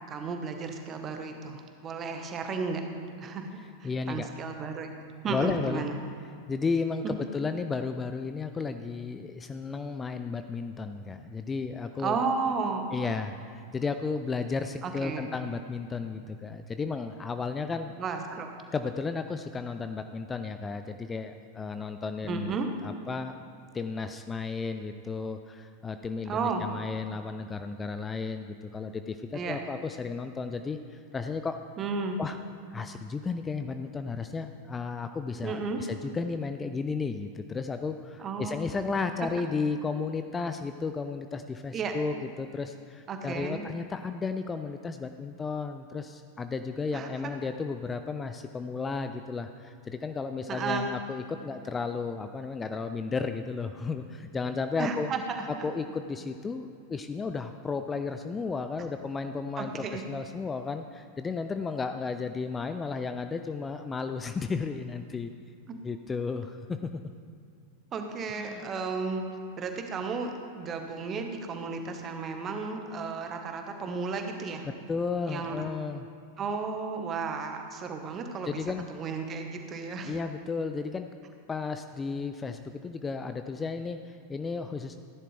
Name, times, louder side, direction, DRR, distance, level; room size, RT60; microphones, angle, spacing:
voice 1, 0.1-2.8 3.2-4.9 5.2-5.9 7.0-7.1 12.0-13.1 14.8-15.3 18.0-18.5 22.3-22.7 26.2-26.7 29.3-29.6 31.8-32.2 35.4-35.8 38.2-38.7 41.7-41.9 43.1-43.6 46.9-47.1 50.5-50.9 54.8-55.4 59.6-60.0 67.9-69.2 69.6-74.7 75.3-75.6 76.4-78.6 78.9-80.1, right 4 dB, 25° right, 5 dB, 1.3 m, -33 dB
voice 2, 3.8-4.3 5.3-5.8 6.5-12.2 12.9-17.9 18.7-22.6 22.8-23.4 23.7-31.6 32.2-32.4 32.7-55.1 55.6-65.3 65.8-67.0 68.4-68.6 74.9-76.1 78.5-78.9 80.0-81.1 81.5-85.0, left 4 dB, 15° left, 8 dB, 0.4 m, -33 dB
16.5 x 10.5 x 3.4 m, 2.4 s
figure-of-eight pair, 90°, 0 cm